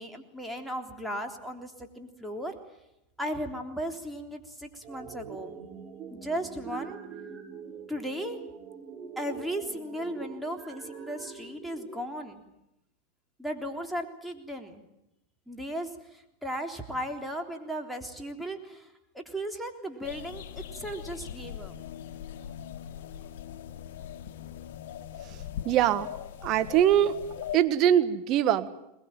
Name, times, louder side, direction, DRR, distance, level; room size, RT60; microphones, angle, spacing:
voice 1, 0.0-2.5 3.2-5.6 6.1-7.0 7.9-8.4 9.2-12.4 13.4-14.8 15.5-18.9 19.1-20.4 20.7-21.7, equal, ahead, 2 dB, 3.5 m, -36 dB
sound 1, 4.8-12.0, right 6 dB, 30° right, 7.9 m, -44 dB
sound 2, 20.0-27.6, left 10 dB, 65° left, 1.9 m, -40 dB
voice 2, 25.2-26.1 26.4-27.1 27.5-28.7, right 11 dB, 45° right, 11 dB, 1.6 m, -23 dB
22.0 x 20.5 x 9.1 m, 0.87 s
hypercardioid pair, 105°, 0 cm